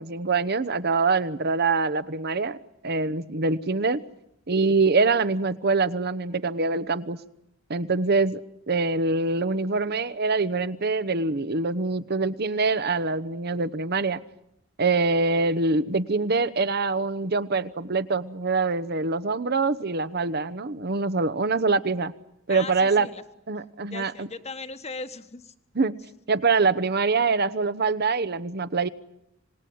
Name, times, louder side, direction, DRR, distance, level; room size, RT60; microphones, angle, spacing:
voice 1, 0.0-2.6 2.8-4.0 4.5-7.2 7.7-8.4 8.7-14.2 14.8-22.1 22.5-23.1 23.5-24.3 25.7-25.9 26.3-28.9, right 3 dB, 55° right, 15 dB, 1.0 m, -24 dB
voice 2, 22.5-23.2 23.5-25.5, left 3 dB, 35° left, 11 dB, 1.4 m, -38 dB
26.5 x 19.5 x 9.4 m, 0.78 s
head